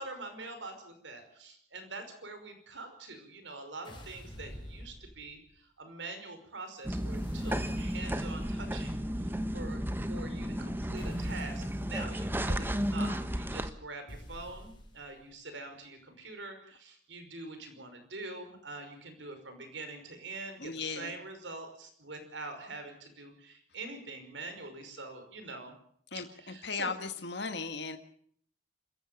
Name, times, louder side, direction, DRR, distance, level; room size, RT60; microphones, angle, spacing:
voice 1, 0.0-9.8 10.1-25.7 26.4-26.9, right 3 dB, 85° right, 7 dB, 5.4 m, -44 dB
sound 1, 3.8-5.5 6.9-8.4 11.0-11.8 14.1-15.2, equal, 25° left, 7.1 m, -47 dB
sound 2, 6.8-13.7, equal, 10° right, 1.1 m, -33 dB
voice 2, 20.6-21.1 26.1-28.0, left 4 dB, 65° left, 7 dB, 1.6 m, -37 dB
26.0 x 15.0 x 7.1 m, 0.63 s
head